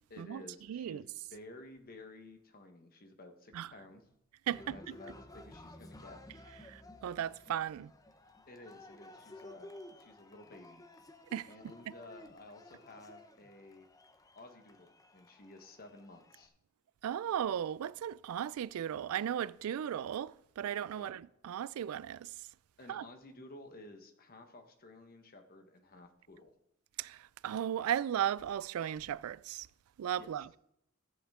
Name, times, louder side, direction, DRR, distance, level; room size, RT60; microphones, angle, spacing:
voice 1, 0.1-4.1 4.6-6.2 8.5-9.7 10.0-10.8 11.4-13.9 14.3-16.5 21.0-21.2 22.8-26.6 30.2-30.4, left 2 dB, 45° left, 1.2 m, -53 dB
voice 2, 0.7-1.0 3.5-3.7 4.5-4.9 6.7-7.9 11.3-11.5 17.0-22.3 22.9-23.0 27.0-29.7 30.0-30.5, right 9 dB, 90° right, 0.3 m, -36 dB
Cheering, 4.5-16.5, left 1 dB, 15° left, 0.6 m, -54 dB
13.5 x 8.0 x 3.6 m
head